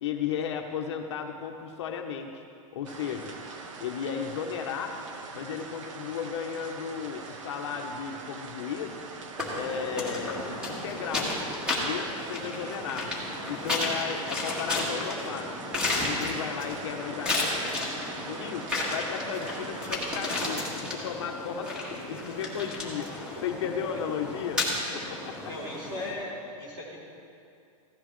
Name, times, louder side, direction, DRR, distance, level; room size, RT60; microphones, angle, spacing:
voice 1, 0.0-2.4 2.7-3.3 3.8-5.0 5.3-9.0 9.5-11.4 11.8-13.1 13.5-15.5 15.9-17.7 18.3-23.1 23.4-25.5, left 7 dB, 50° left, 3 dB, 0.8 m, -35 dB
sound 1, 2.8-20.6, right 4 dB, 60° right, 1.1 m, -43 dB
sound 2, 9.4-26.1, left 2 dB, 5° right, 1.5 m, -33 dB
voice 2, 25.5-26.3 26.6-27.0, left 2 dB, 25° right, -4 dB, 3.2 m, -37 dB
16.0 x 13.5 x 3.1 m, 2.5 s
supercardioid pair, 180°, 18 cm